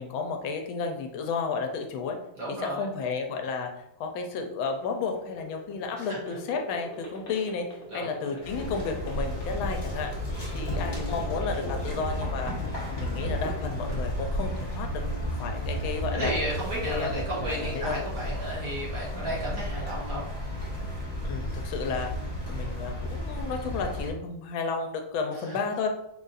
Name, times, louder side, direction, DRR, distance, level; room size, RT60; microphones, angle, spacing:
voice 1, 0.0-2.2 2.5-3.7 4.0-7.6 7.9-10.1 10.5-12.5 12.8-16.3 16.8-18.0 21.2-22.1 22.5-25.9, left 5 dB, 80° left, 4 dB, 1.3 m, -32 dB
voice 2, 2.3-2.9 6.0-6.2 7.9-8.4 10.5-10.8 16.1-20.3 25.3-25.6, right 1 dB, 55° right, -6 dB, 1.2 m, -34 dB
sound 1, 4.6-12.8 13.2-14.0, left 1 dB, 45° left, 1.0 m, -43 dB
sound 2, 8.4-24.1, equal, 25° left, 0.5 m, -33 dB
4.0 x 2.4 x 3.9 m, 0.83 s
omnidirectional pair, 2.2 m